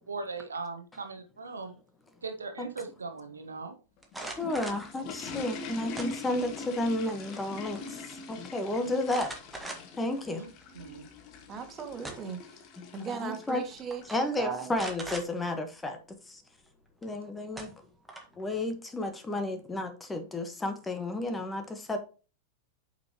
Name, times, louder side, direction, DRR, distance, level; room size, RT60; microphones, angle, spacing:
voice 1, 0.1-1.8 2.2-3.8 10.3-10.5 10.7-11.0, right 4 dB, 75° right, 1.2 m, -39 dB
sound 1, 4.0-14.3, left 4 dB, 40° left, 1.5 m, -43 dB
sound 2, 4.0-4.9 5.9-6.6 7.0-7.5 7.7-7.8 9.1-10.1 10.6-10.7 11.7-12.4 13.4-13.6 13.9-14.2 14.7-15.3 17.0-17.1 17.6-18.4, right 2 dB, 5° right, 1.9 m, -40 dB
voice 2, 4.2-9.3 10.0-10.4 12.8-13.6 14.1-16.4 17.0-17.7 18.4-22.0, left 2 dB, 10° left, 1.4 m, -32 dB
voice 3, 11.5-12.4 12.9-14.7, right 6 dB, 25° right, 2.0 m, -37 dB
8.7 x 5.7 x 3.0 m
figure-of-eight pair, 90°, 0 cm